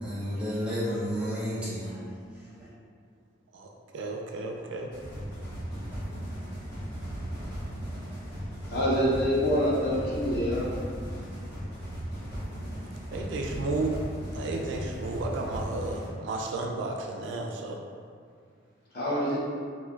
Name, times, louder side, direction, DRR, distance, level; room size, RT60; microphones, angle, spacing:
voice 1, 0.0-2.0 2.6-2.7, equal, 5° right, -10 dB, 0.7 m, -31 dB
voice 2, 3.9-4.9 13.1-14.0 14.3-17.8, right 2 dB, 70° right, 2 dB, 0.3 m, -33 dB
sound 1, 4.9-16.1, equal, 20° left, 1.2 m, -37 dB
voice 3, 8.7-10.7 18.9-19.4, equal, 55° left, -6 dB, 0.7 m, -26 dB
3.2 x 2.1 x 2.3 m, 2.1 s
head